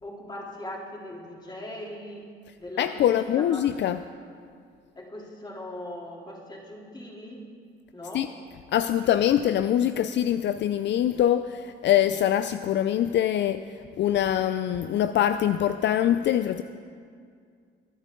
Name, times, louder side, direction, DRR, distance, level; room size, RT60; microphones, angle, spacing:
voice 1, 0.0-2.2 2.6-3.6 5.0-7.4 7.9-8.3, left 1 dB, 20° left, -3 dB, 3.3 m, -39 dB
voice 2, 2.8-4.0 8.1-8.3 8.7-13.6 14.0-16.6, left 11 dB, 65° left, 11 dB, 0.4 m, -23 dB
24.0 x 9.1 x 3.8 m, 2.2 s
cardioid pair, 90°, 20 cm